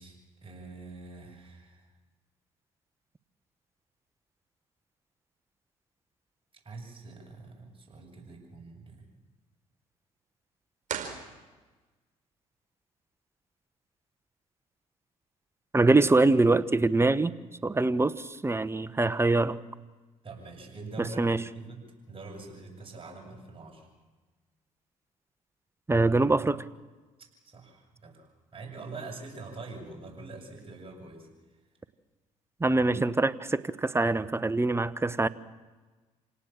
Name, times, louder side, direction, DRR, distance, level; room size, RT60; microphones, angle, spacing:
voice 1, 0.0-1.9 6.6-9.1 15.9-16.0 20.2-21.8 22.1-23.9 27.4-31.3, right 3 dB, 35° right, 8.0 m, -44 dB
sound 1, 10.8-12.0, right 8 dB, 50° right, 4.5 m, -38 dB
voice 2, 15.7-17.3 17.6-19.6 21.2-21.4 25.9-26.6 32.6-35.3, right 2 dB, 15° right, 1.1 m, -24 dB
27.0 x 18.0 x 7.4 m
hypercardioid pair, 60°, 16 cm